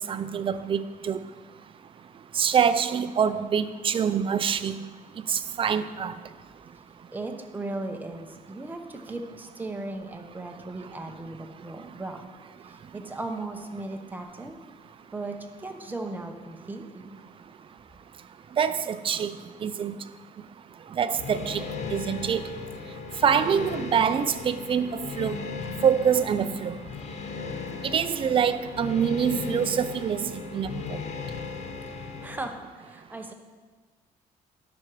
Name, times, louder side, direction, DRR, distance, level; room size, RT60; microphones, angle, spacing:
voice 1, 0.1-1.2 2.4-4.7 5.3-6.1 18.6-19.3 19.6-19.9 21.0-21.6 21.9-22.4 23.2-25.4 25.8-26.8 27.8-30.7, right 7 dB, 35° right, 12 dB, 0.4 m, -25 dB
voice 2, 7.1-12.3 12.6-14.6 14.8-17.2 31.9-33.3, right 2 dB, 10° right, 4 dB, 0.9 m, -37 dB
sound 1, 21.1-32.5, left 5 dB, 50° left, 0.8 m, -37 dB
10.5 x 6.2 x 4.7 m, 1.4 s
cardioid pair, 120°, 15 cm